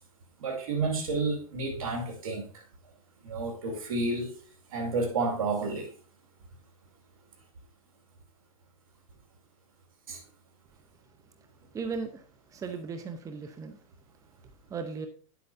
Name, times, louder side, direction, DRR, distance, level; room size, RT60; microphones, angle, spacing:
voice 1, 0.4-2.5 3.2-4.3 4.7-5.9 10.1-10.2, right 3 dB, 85° right, 2.3 m, -30 dB
voice 2, 11.7-12.2 12.5-13.8 14.7-15.1, right 5 dB, 20° right, 0.9 m, -36 dB
9.8 x 8.0 x 2.7 m
hypercardioid pair, 120°, 18 cm